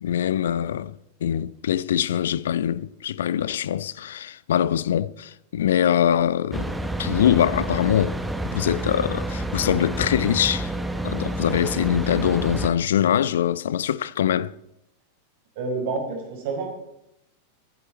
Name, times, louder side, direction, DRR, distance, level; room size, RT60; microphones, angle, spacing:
voice 1, 0.0-6.7 7.0-8.2 8.5-10.7 11.0-14.5, left 10 dB, 60° left, 0.5 m, -23 dB
sound 1, 6.5-12.7, right 1 dB, 5° right, 1.5 m, -29 dB
voice 2, 15.5-16.7, right 4 dB, 50° right, 5.0 m, -28 dB
20.5 x 11.5 x 4.3 m
figure-of-eight pair, 90°, 0 cm